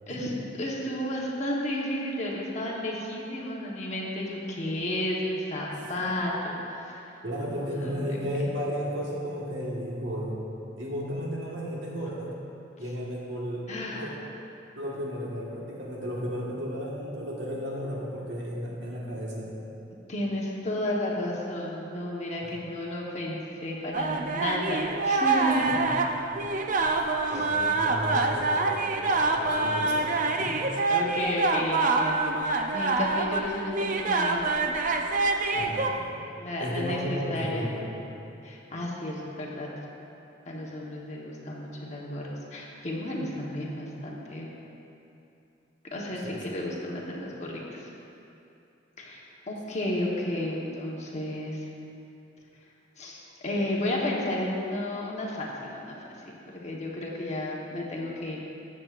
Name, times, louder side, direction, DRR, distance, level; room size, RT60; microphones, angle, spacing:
voice 1, 0.6-7.1 7.5-8.0 8.4-8.5 13.7-14.1 20.1-25.7 30.9-34.4 36.4-37.7 38.4-39.7 40.5-42.2 42.5-44.5 45.9-47.9 49.0-51.6 53.0-56.0 56.5-58.4, left 1 dB, 35° left, -3 dB, 1.2 m, -32 dB
voice 2, 7.2-10.4 10.8-12.3 12.8-13.7 13.9-14.2 14.7-19.6 25.5-25.8 26.3-26.4 26.8-27.0 27.3-30.5 35.5-36.2 36.6-37.9 46.2-46.4, equal, 65° right, -4 dB, 1.6 m, -34 dB
sound 1, 23.9-35.9, right 3 dB, 45° right, 0.5 m, -26 dB
14.0 x 7.5 x 2.5 m, 2.8 s
head